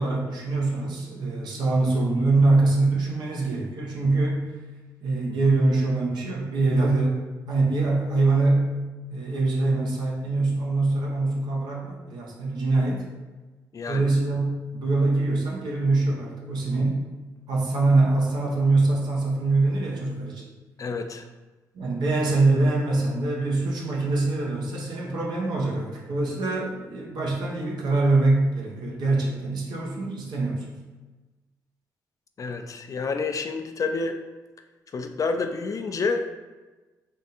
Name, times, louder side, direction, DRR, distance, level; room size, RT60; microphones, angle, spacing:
voice 1, 0.0-4.5 5.0-8.7 9.1-13.1 13.9-17.0 17.5-20.4 21.7-30.7, right 2 dB, 75° right, -2 dB, 1.0 m, -24 dB
voice 2, 20.8-21.3 32.4-34.2 34.9-36.3, left 4 dB, 50° left, 6 dB, 0.4 m, -28 dB
3.6 x 2.5 x 4.2 m, 1.2 s
supercardioid pair, 50°, 7 cm